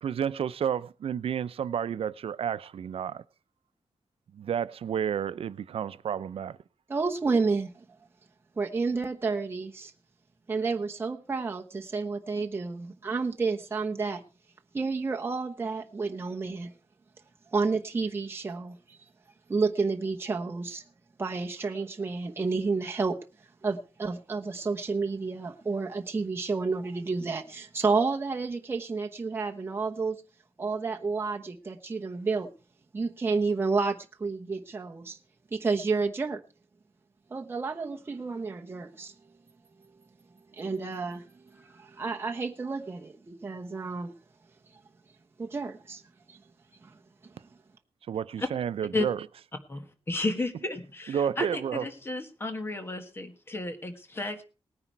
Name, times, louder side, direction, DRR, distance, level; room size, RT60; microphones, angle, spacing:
voice 1, 0.0-3.2 4.3-6.6 48.1-49.3 51.1-51.9, right 8 dB, 75° right, 0.6 m, -31 dB
voice 2, 6.9-7.8 8.6-9.9 10.5-14.2 14.7-16.7 17.5-19.0 19.5-20.8 21.2-23.2 23.6-30.2 30.6-32.5 32.9-35.2 35.5-36.4 37.3-39.1 40.5-41.3 41.5-44.1 45.4-46.0 46.3-46.4 46.8-46.9, right 4 dB, 25° right, 1.0 m, -30 dB
voice 3, 49.7-54.4, left 2 dB, 25° left, 1.5 m, -33 dB
18.5 x 9.8 x 4.6 m
wide cardioid pair, 175°, 10 cm